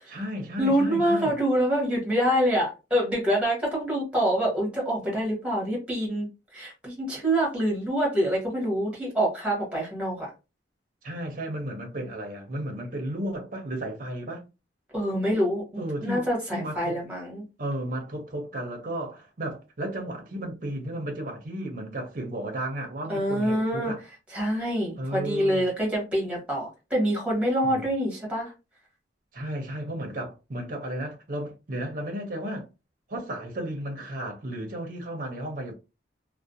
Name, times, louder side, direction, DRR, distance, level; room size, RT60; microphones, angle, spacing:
voice 1, 0.1-1.3 11.0-14.4 15.8-17.0 17.6-24.0 25.0-25.7 27.6-27.9 29.3-32.7 33.1-35.7, right 1 dB, 45° right, 0.6 m, -33 dB
voice 2, 0.6-6.3 6.5-10.3 14.9-17.4 23.1-23.9 24.3-28.5, equal, 5° right, 1.1 m, -26 dB
2.4 x 2.0 x 2.6 m
head